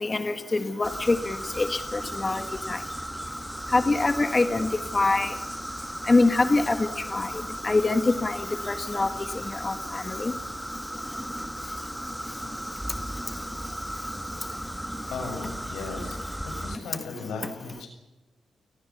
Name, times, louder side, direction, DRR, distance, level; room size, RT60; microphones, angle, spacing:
voice 1, 0.0-2.8 3.7-5.3 6.1-6.8 7.1-7.3 7.6-9.1 9.6-10.3, left 3 dB, 30° left, 9 dB, 1.4 m, -24 dB
sound 1, 0.8-16.8, equal, 5° right, 1.2 m, -36 dB
voice 2, 15.1-17.9, left 4 dB, 90° left, 4 dB, 6.6 m, -37 dB
29.0 x 19.0 x 7.2 m, 1.1 s
cardioid pair, 80°, 0 cm